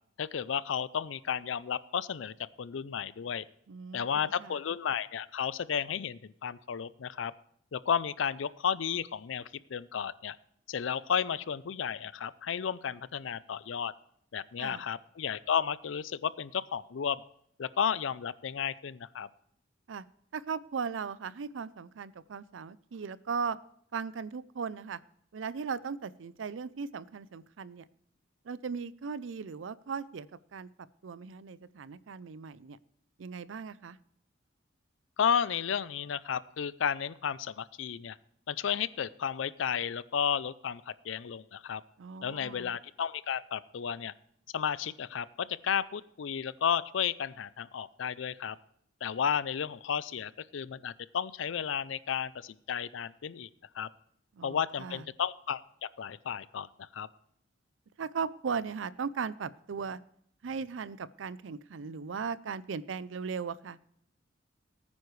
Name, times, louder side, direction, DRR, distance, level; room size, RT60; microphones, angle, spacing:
voice 1, 0.2-3.4 3.9-7.3 7.7-10.4 10.7-13.9 14.3-17.2 17.6-19.3 35.2-38.2 38.5-41.8 42.2-44.1 44.5-48.6 49.0-53.5 53.7-53.9 54.4-55.6 56.0-57.1, left 7 dB, 85° left, 18 dB, 0.4 m, -33 dB
voice 2, 3.7-4.6 14.6-14.8 19.9-20.1 20.3-23.6 23.9-25.0 25.3-27.9 28.4-30.7 31.0-32.8 33.2-34.0 42.0-42.7 54.4-55.0 58.0-60.0 60.4-63.8, right 5 dB, 80° right, 18 dB, 0.5 m, -38 dB
18.0 x 9.5 x 3.2 m, 0.69 s
head